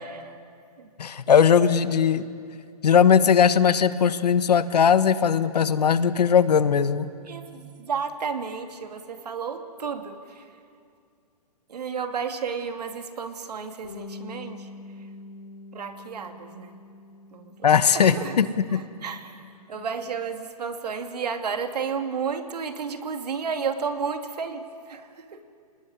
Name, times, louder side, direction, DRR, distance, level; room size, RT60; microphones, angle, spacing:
voice 1, 1.0-2.3 2.8-7.1 17.6-18.5 18.7-18.8, left 7 dB, 85° left, 12 dB, 1.4 m, -19 dB
voice 2, 7.3-10.5 11.7-14.7 15.7-16.8 17.3-18.4 18.7-25.4, right 6 dB, 80° right, 6 dB, 2.6 m, -32 dB
Bass guitar, 13.8-20.1, left 3 dB, 65° left, 2.9 m, -45 dB
26.5 x 19.5 x 9.7 m, 2.3 s
hypercardioid pair, 140°, 20 cm